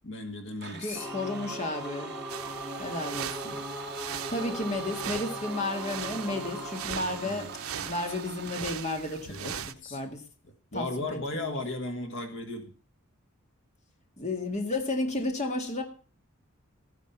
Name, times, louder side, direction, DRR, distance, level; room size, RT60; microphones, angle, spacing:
voice 1, 0.0-1.1 6.9-7.5 7.8-7.9 9.3-10.0 10.7-12.7, left 2 dB, 60° left, 5 dB, 1.6 m, -36 dB
Domestic sounds home sounds, 0.6-9.3, right 6 dB, 50° right, 1.1 m, -44 dB
voice 2, 0.7-2.1 2.8-3.6 4.3-7.5 7.8-9.6 9.9-10.2 10.7-11.5 14.2-15.8, left 2 dB, 35° left, 4 dB, 1.9 m, -32 dB
Singing / Musical instrument, 0.9-8.4, equal, 5° right, 1.4 m, -40 dB
sound 1, 2.3-9.7, right 9 dB, 80° right, 0.7 m, -40 dB
13.5 x 10.0 x 5.7 m, 0.39 s
head